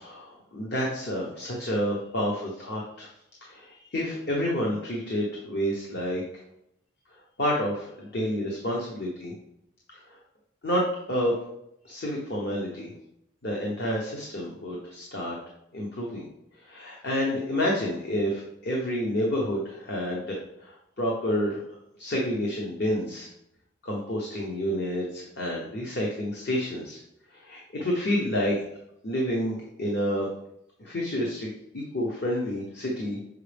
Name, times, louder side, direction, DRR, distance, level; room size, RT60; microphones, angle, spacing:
voice 1, 0.0-3.1 3.4-6.2 7.4-9.3 10.1-10.2 10.6-11.4 11.8-12.9 13.4-15.3 15.7-16.3 16.6-21.6 22.0-23.3 23.8-27.0 27.3-28.6 29.0-30.3 30.8-33.2, equal, 55° left, -2 dB, 1.0 m, -29 dB
6.5 x 4.8 x 3.4 m, 0.80 s
head